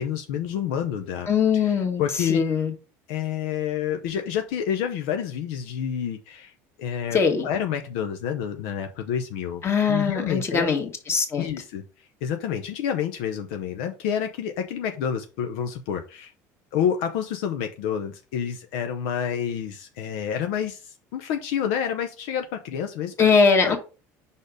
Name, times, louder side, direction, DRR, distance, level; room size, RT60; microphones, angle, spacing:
voice 1, 0.0-2.5 3.1-6.5 6.8-9.6 9.9-10.7 11.4-11.8 12.2-16.3 16.7-23.3 23.6-23.8, left 8 dB, 80° left, 0.7 m, -28 dB
voice 2, 1.3-2.7 7.1-7.5 9.6-11.5 23.2-23.8, left 5 dB, 35° left, 1.8 m, -21 dB
5.3 x 4.2 x 4.9 m
supercardioid pair, 90°, 7 cm